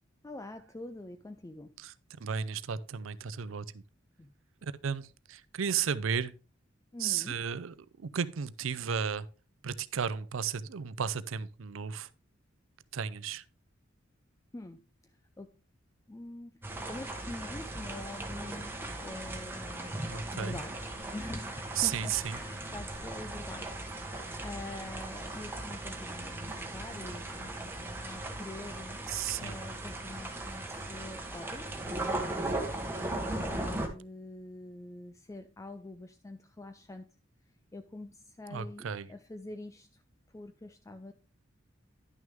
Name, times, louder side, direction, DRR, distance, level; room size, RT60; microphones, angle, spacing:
voice 1, 0.2-1.7 4.2-4.3 6.9-7.4 14.5-14.8 15.4-15.5 16.1-20.0 20.3-20.8 21.1-28.9 29.4-32.5 33.1-37.1 37.7-40.0 40.3-41.1, left 2 dB, 15° left, 0.4 m, -45 dB
voice 2, 2.2-3.8 4.6-6.3 7.0-9.3 9.6-12.1 12.9-13.4 20.1-20.6 21.8-22.4 29.1-29.6 38.5-39.1, right 7 dB, 80° right, 0.5 m, -34 dB
sound 1, 16.6-33.9, right 2 dB, 10° right, 1.3 m, -38 dB
10.5 x 6.3 x 3.5 m
head